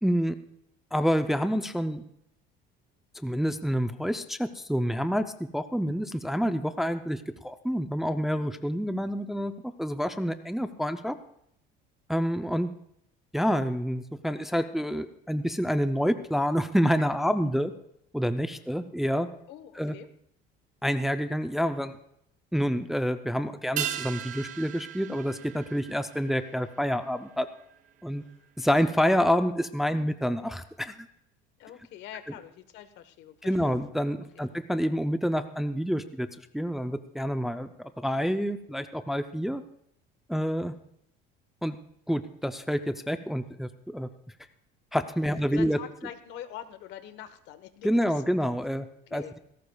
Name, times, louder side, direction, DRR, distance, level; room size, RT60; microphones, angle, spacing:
voice 1, 0.0-0.4 0.9-2.0 3.1-9.5 9.8-11.2 12.1-12.7 13.3-17.7 18.1-19.3 19.8-19.9 20.8-22.0 22.5-27.5 28.0-28.2 28.6-31.0 33.4-36.3 36.5-39.6 40.3-40.7 41.6-41.8 42.1-44.1 44.9-45.8 47.8-49.4, equal, ahead, 9 dB, 0.5 m, -28 dB
voice 2, 19.5-20.1 31.6-33.7 34.3-34.4 45.2-48.0 48.4-48.5 49.1-49.3, left 11 dB, 65° left, 10 dB, 1.2 m, -44 dB
sound 1, 23.8-28.5 28.7-28.8, right 11 dB, 40° right, 0.7 m, -38 dB
19.0 x 17.0 x 2.3 m, 0.73 s
cardioid pair, 145°, 20 cm